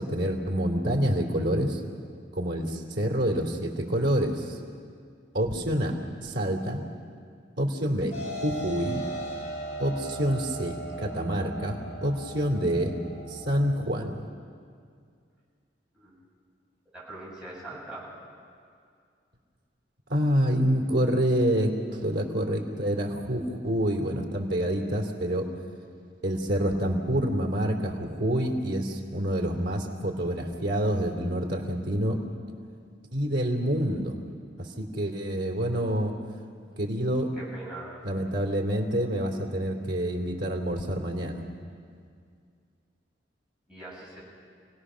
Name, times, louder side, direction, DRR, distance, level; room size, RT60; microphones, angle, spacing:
voice 1, 0.0-1.8 2.3-4.6 5.3-6.8 7.6-9.0 9.8-12.9 13.3-14.2 20.1-25.5 26.2-32.2 33.1-34.2 34.6-36.1 36.8-37.3 38.0-41.5, equal, 85° right, 1 dB, 2.9 m, -27 dB
sound 1, 8.1-13.7, right 1 dB, 40° left, 5.8 m, -37 dB
voice 2, 16.9-18.1 37.3-37.9 43.7-44.2, right 2 dB, 5° right, -7 dB, 7.8 m, -42 dB
28.0 x 18.5 x 6.3 m, 2.2 s
head